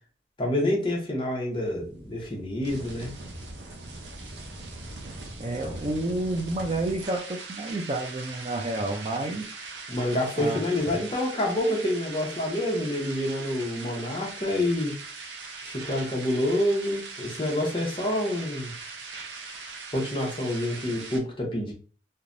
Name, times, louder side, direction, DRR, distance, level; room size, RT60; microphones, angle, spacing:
voice 1, 0.4-3.1 9.9-15.0 15.6-18.7 19.9-21.7, left 1 dB, 25° left, -1 dB, 0.8 m, -27 dB
sound 1, 1.5-21.2, right 3 dB, 80° right, 0.7 m, -41 dB
voice 2, 5.4-9.5 10.4-10.6, right 2 dB, 30° right, 2 dB, 0.4 m, -30 dB
3.1 x 2.1 x 2.5 m, 0.39 s
head